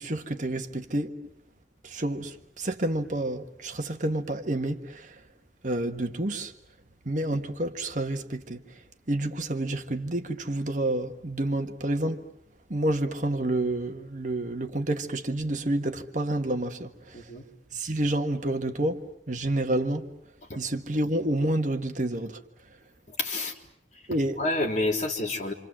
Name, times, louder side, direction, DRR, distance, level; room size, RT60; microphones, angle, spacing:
voice 1, 0.0-1.3 1.8-5.2 5.6-6.5 7.0-12.3 12.7-17.3 17.7-20.1 20.5-22.4 22.7-22.8 24.1-24.4, right 1 dB, 45° right, 1.7 m, -29 dB
voice 2, 23.1-23.5 24.4-25.5, left 2 dB, 45° left, 3.7 m, -28 dB
27.5 x 27.5 x 7.6 m
head